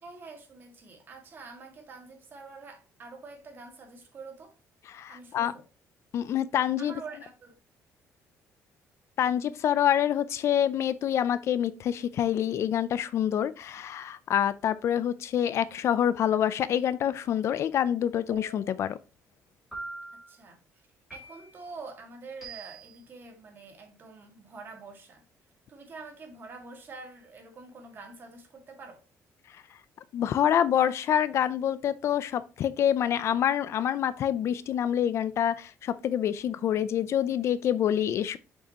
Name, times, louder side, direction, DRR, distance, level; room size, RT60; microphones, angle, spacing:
voice 1, 0.0-4.5 5.1-5.6 6.8-7.5 20.1-25.2 25.7-29.0, right 4 dB, 35° right, 1.8 m, -46 dB
voice 2, 4.9-5.5 6.1-6.9 9.2-19.0 30.1-38.4, left 10 dB, 55° left, 0.4 m, -26 dB
sound 1, 18.3-18.9 19.7-20.3 21.1-21.7 22.4-23.0, right 3 dB, ahead, 3.1 m, -43 dB
6.7 x 5.5 x 2.9 m
cardioid pair, 150°, 6 cm